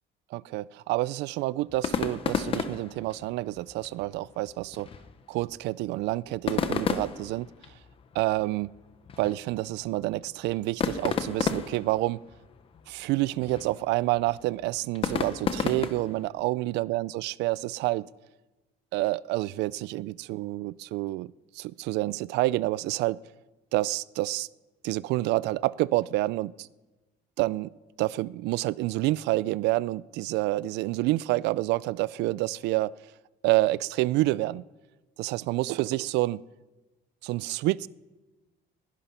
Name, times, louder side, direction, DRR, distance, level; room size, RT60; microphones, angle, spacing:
voice 1, 0.3-4.9 5.3-7.5 8.1-8.7 9.2-12.2 12.9-18.1 18.9-23.2 23.7-24.5 24.8-26.7 27.4-27.7 28.0-32.9 33.4-34.6 35.2-36.4 37.2-37.9, right 18 dB, 90° right, 21 dB, 0.4 m, -28 dB
sound 1, 1.7-16.3, left 6 dB, 35° left, 0.9 m, -34 dB
19.5 x 11.5 x 5.6 m, 1.2 s
cardioid pair, 160°, 17 cm